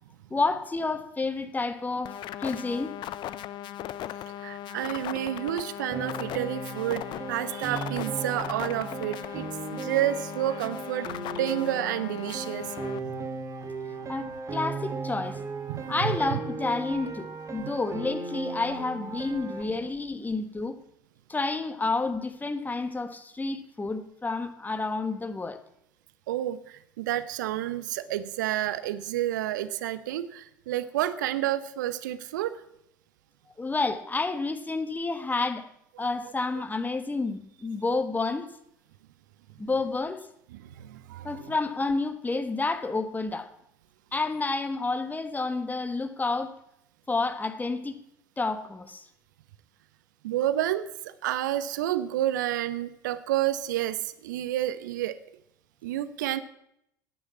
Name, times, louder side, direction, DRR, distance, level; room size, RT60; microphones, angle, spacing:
voice 1, 0.3-2.1 2.4-2.9 14.1-15.4 15.9-20.8 21.3-25.6 33.6-35.7 36.0-38.5 39.6-40.3 41.2-43.5 44.1-46.5 47.1-48.0 48.4-49.0, left 3 dB, 15° left, 1.3 m, -30 dB
sound 1, 2.0-13.0, left 12 dB, 50° left, 0.6 m, -38 dB
voice 2, 4.4-7.0 7.3-9.5 9.7-11.1 11.4-12.8 13.1-13.2 15.7-16.4 17.6-17.8 26.3-32.5 36.0-36.1 40.5-41.5 50.2-55.2 55.8-56.4, right 13 dB, 70° right, 0.7 m, -30 dB
Piano, 5.9-19.6, right 4 dB, 30° right, 1.8 m, -37 dB
9.6 x 8.9 x 8.4 m
figure-of-eight pair, 65°, 10 cm